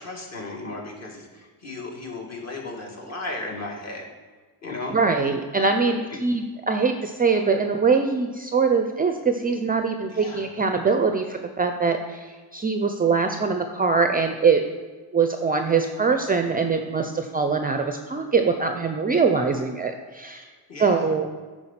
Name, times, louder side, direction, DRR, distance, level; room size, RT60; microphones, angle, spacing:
voice 1, 0.0-4.1 4.6-5.0 6.1-6.2 10.1-10.5 20.7-21.1, left 2 dB, 40° left, 0 dB, 1.8 m, -35 dB
voice 2, 4.9-14.6 15.1-20.5 20.8-21.3, right 5 dB, 25° right, 6 dB, 0.4 m, -23 dB
9.6 x 4.6 x 5.7 m, 1.4 s
cardioid pair, 125°, 40 cm